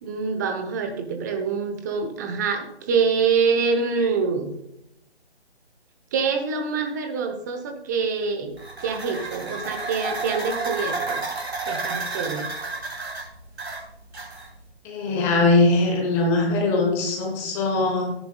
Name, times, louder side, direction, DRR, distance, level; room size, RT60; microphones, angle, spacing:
voice 1, 0.0-4.5 6.1-8.5 8.8-11.2 11.6-12.5, right 5 dB, 15° right, 5 dB, 0.9 m, -25 dB
sound 1, 8.5-14.7, right 3 dB, 70° right, 2.9 m, -31 dB
voice 2, 14.8-18.1, left 2 dB, 5° left, 0 dB, 0.8 m, -21 dB
13.5 x 10.5 x 2.3 m, 0.82 s
figure-of-eight pair, 150°, 33 cm